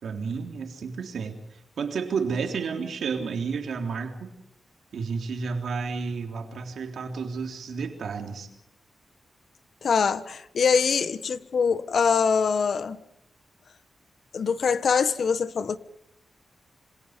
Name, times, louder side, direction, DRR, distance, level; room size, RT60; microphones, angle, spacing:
voice 1, 0.0-4.3 4.9-8.5, right 5 dB, 85° right, 4 dB, 3.6 m, -31 dB
voice 2, 9.8-13.0 14.3-15.8, left 6 dB, 70° left, 13 dB, 1.3 m, -23 dB
27.0 x 26.5 x 5.3 m, 0.81 s
wide cardioid pair, 105°, 0 cm